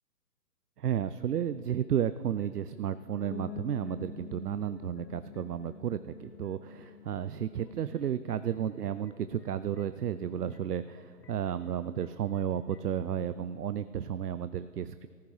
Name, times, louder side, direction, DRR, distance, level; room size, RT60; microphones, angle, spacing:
voice 1, 0.8-15.1, right 9 dB, 70° right, 13 dB, 0.6 m, -33 dB
sound 1, 1.3-13.0, left 4 dB, 85° left, 1.9 m, -59 dB
sound 2, 3.3-8.9, left 11 dB, 65° left, 0.9 m, -48 dB
23.5 x 14.0 x 3.2 m, 2.2 s
hypercardioid pair, 180°, 48 cm